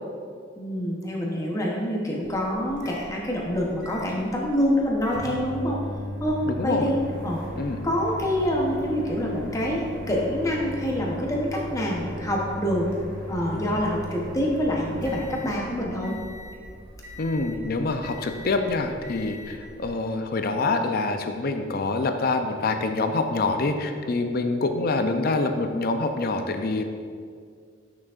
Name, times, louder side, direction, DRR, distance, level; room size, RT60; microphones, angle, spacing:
voice 1, 0.6-5.8 6.2-7.0 7.2-7.4 7.8-12.9 13.3-16.2, equal, 15° left, -3 dB, 0.8 m, -26 dB
Microwave oven, 2.2-20.2, equal, 60° right, 1.3 m, -38 dB
voice 2, 6.5-6.9 7.6-7.8 17.2-26.8, left 3 dB, 50° left, 7 dB, 0.5 m, -26 dB
8.9 x 6.0 x 2.4 m, 2.1 s
head